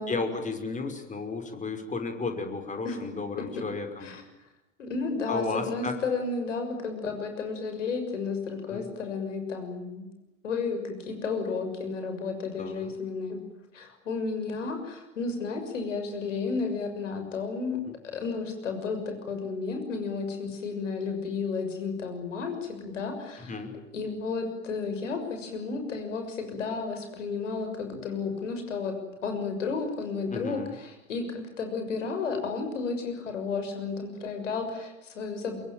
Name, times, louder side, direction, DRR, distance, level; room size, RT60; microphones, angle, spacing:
voice 1, 0.1-4.1 5.3-5.9 8.7-8.9 12.6-12.9 17.9-18.0 23.4-23.7 30.3-30.7, left 4 dB, 20° left, 6 dB, 5.8 m, -33 dB
voice 2, 2.8-3.7 4.0-4.2 4.8-10.1 10.4-13.4 13.7-17.8 18.1-23.5 23.9-29.0 29.2-35.6, left 4 dB, 70° left, 6 dB, 6.6 m, -32 dB
25.5 x 23.0 x 9.2 m, 0.94 s
figure-of-eight pair, 80°, 38 cm